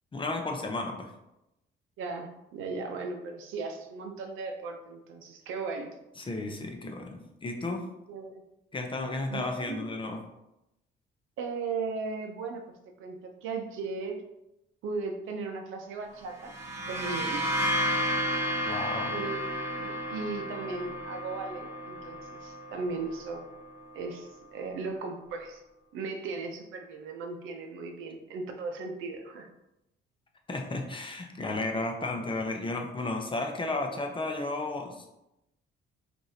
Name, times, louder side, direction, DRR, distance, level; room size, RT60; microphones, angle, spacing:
voice 1, 0.1-1.1 6.2-7.8 8.7-10.2 18.7-19.1 30.5-35.2, left 2 dB, 25° left, 3 dB, 0.6 m, -33 dB
voice 2, 2.0-5.9 8.1-8.4 9.3-9.9 11.4-12.6 13.0-14.2 14.8-16.5 16.9-17.4 19.0-23.5 23.9-25.6 25.9-29.5, right 4 dB, 90° right, 4 dB, 0.6 m, -37 dB
sound 1, 16.3-23.9, equal, 15° right, 1.2 m, -32 dB
4.8 x 2.6 x 2.8 m, 0.89 s
cardioid pair, 90°, 20 cm